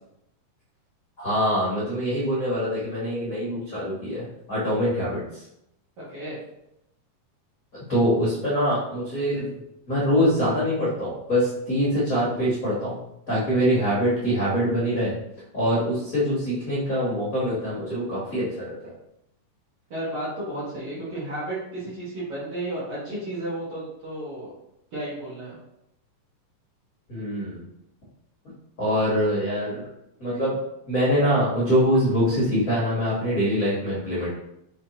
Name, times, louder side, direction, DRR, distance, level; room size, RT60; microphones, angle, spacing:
voice 1, 1.2-5.4 7.9-9.5 9.9-13.0 13.3-15.1 15.5-18.9 27.1-27.7 28.8-29.8 30.2-30.6 30.9-34.3, equal, 75° left, -8 dB, 0.7 m, -24 dB
voice 2, 6.0-6.4 15.7-15.8 19.9-24.5 24.9-25.6, right 1 dB, 55° right, -8 dB, 1.7 m, -33 dB
5.7 x 3.1 x 2.8 m, 0.82 s
omnidirectional pair, 3.9 m